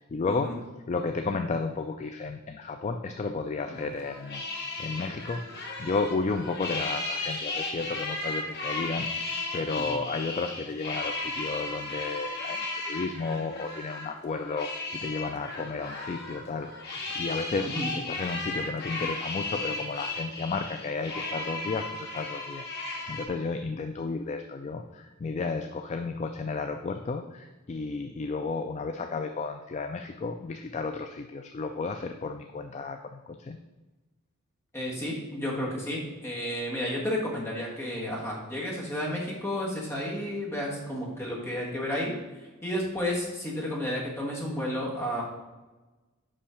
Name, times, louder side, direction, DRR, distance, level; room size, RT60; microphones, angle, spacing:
voice 1, 0.1-4.4 4.8-33.6, left 4 dB, 35° left, 6 dB, 0.3 m, -33 dB
sound 1, 3.7-23.3, left 2 dB, 50° left, 1.2 m, -35 dB
voice 2, 17.6-17.9 34.7-45.2, left 1 dB, 10° left, -4 dB, 1.5 m, -32 dB
5.5 x 5.3 x 4.9 m, 1.2 s
head